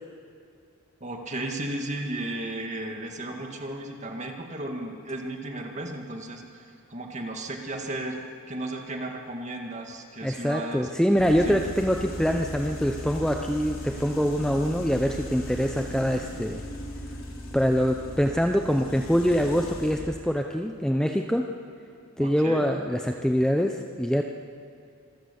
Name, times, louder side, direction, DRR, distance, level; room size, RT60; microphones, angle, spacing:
voice 1, 1.0-8.2 8.5-10.9 11.5-11.6 22.2-22.7, right 1 dB, 35° right, 2 dB, 2.1 m, -34 dB
voice 2, 10.2-16.6 17.5-21.5 22.2-24.2, equal, 5° left, 3 dB, 0.6 m, -24 dB
sound 1, 11.1-20.0, equal, 65° left, 3.9 m, -38 dB
26.0 x 14.0 x 7.1 m, 2.4 s
head